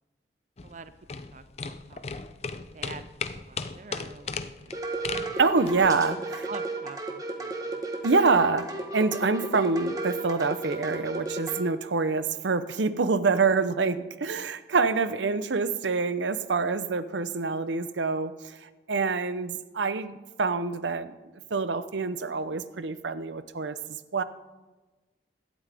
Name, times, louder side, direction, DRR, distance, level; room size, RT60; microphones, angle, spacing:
sound 1, 0.6-5.9, left 5 dB, 35° left, 0.5 m, -36 dB
voice 1, 1.3-2.2 2.7-3.1 3.3-5.2 6.5-7.0 7.4-7.7, right 4 dB, 45° right, 12 dB, 0.4 m, -45 dB
sound 2, 4.7-11.6, right 2 dB, 20° right, 1.2 m, -33 dB
voice 2, 5.4-6.5 8.0-21.1 21.5-24.2, right 4 dB, 90° right, 13 dB, 0.7 m, -26 dB
16.5 x 12.0 x 3.5 m, 1.2 s
head